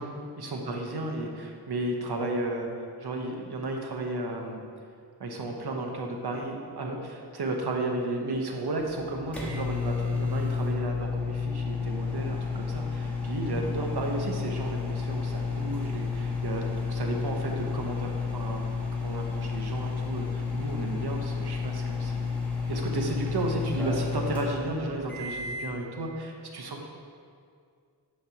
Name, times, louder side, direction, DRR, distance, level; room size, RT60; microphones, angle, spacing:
voice 1, 0.4-4.6 5.2-16.6 16.9-18.7 18.9-22.3 22.7-26.9, right 2 dB, 70° right, 2 dB, 0.9 m, -33 dB
sound 1, 8.8-25.7, left 5 dB, 5° left, 1.1 m, -31 dB
6.5 x 3.1 x 5.8 m, 2.2 s
wide cardioid pair, 85°, 41 cm